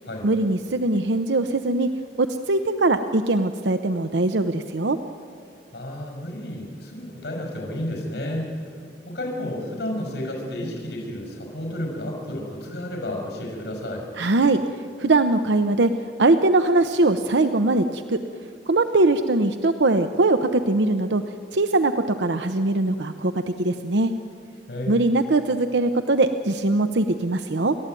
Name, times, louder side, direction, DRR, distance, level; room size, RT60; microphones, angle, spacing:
voice 1, 0.2-1.9 2.2-5.0 14.2-14.6 15.0-15.9 16.2-18.2 18.7-21.2 21.5-23.3 23.6-24.1 24.9-27.8, right 2 dB, 85° right, 9 dB, 0.8 m, -21 dB
voice 2, 5.7-8.7 9.1-14.1 24.7-25.1, left 1 dB, 80° left, 0 dB, 5.7 m, -31 dB
30.0 x 13.0 x 9.2 m, 2.2 s
head